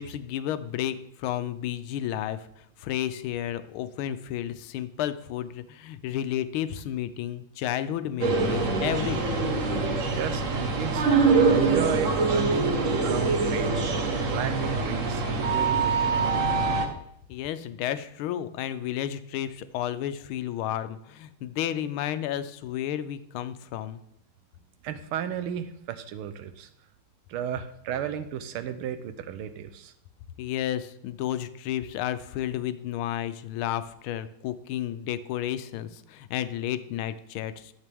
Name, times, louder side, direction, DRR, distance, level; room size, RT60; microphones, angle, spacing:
voice 1, 0.0-9.4 17.3-24.0 30.4-37.7, left 11 dB, 80° left, 12 dB, 1.4 m, -32 dB
sound 1, 8.2-16.9, right 4 dB, 45° right, 1.1 m, -24 dB
voice 2, 10.1-13.8 14.3-15.2 15.5-16.7 24.8-26.7 27.3-29.9, right 8 dB, 85° right, 11 dB, 1.6 m, -34 dB
11.0 x 7.4 x 3.5 m, 0.74 s
omnidirectional pair, 2.3 m